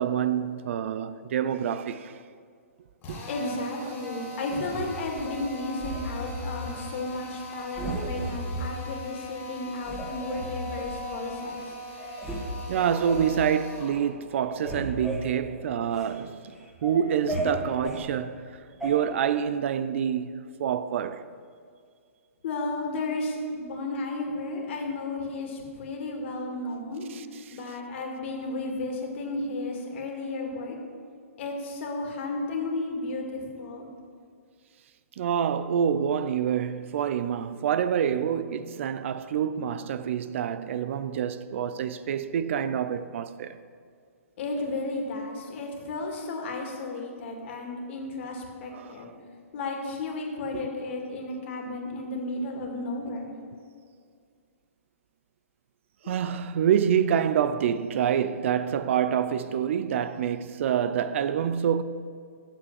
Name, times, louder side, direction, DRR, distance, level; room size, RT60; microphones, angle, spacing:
voice 1, 0.0-2.2 3.1-3.2 6.4-6.6 12.7-16.5 16.8-18.5 18.8-21.3 35.2-43.6 48.7-49.1 56.1-61.8, right 8 dB, 55° right, 0.4 m, -27 dB
Drill, 3.0-14.0, left 1 dB, 25° left, 2.4 m, -41 dB
voice 2, 3.3-11.7 22.4-27.1 27.5-30.8 31.4-33.9 38.0-38.1 44.4-49.1 49.5-53.3 56.0-56.1, left 2 dB, 50° left, 2.1 m, -33 dB
sound 1, 4.7-5.3 5.8-6.8 7.2-7.4 7.7-8.7 9.2-9.3 9.8-11.0 11.6-11.7 12.0-12.4 12.7-13.3 13.8-14.1 14.3-16.1 16.5-18.0 18.8-18.9, right 1 dB, ahead, 2.0 m, -34 dB
8.3 x 7.2 x 6.5 m
hypercardioid pair, 135°, 8 cm